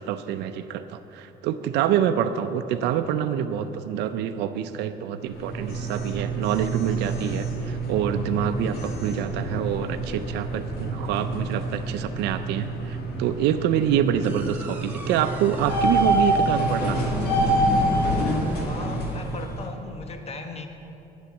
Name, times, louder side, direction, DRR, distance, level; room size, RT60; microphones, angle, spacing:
voice 1, 0.0-17.0, right 9 dB, 85° right, 8 dB, 0.6 m, -26 dB
sound 1, 5.3-19.7, right 1 dB, 70° left, 1.9 m, -27 dB
sound 2, 14.2-19.2, equal, 10° right, 1.7 m, -39 dB
voice 2, 18.6-20.7, left 3 dB, 35° left, 5 dB, 1.2 m, -37 dB
10.5 x 9.0 x 7.1 m, 2.9 s
cardioid pair, 110°, 17 cm